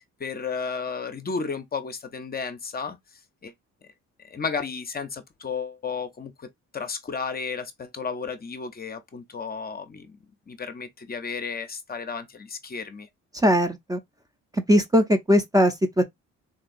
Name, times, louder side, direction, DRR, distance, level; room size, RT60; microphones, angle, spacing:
voice 1, 0.2-3.0 3.4-3.5 4.2-6.5 6.7-10.1 10.5-13.1, left 5 dB, 30° left, 0.6 m, -33 dB
voice 2, 13.4-14.0 14.7-16.0, equal, 10° right, 0.5 m, -20 dB
3.8 x 2.3 x 2.5 m
cardioid pair, 90°, 30 cm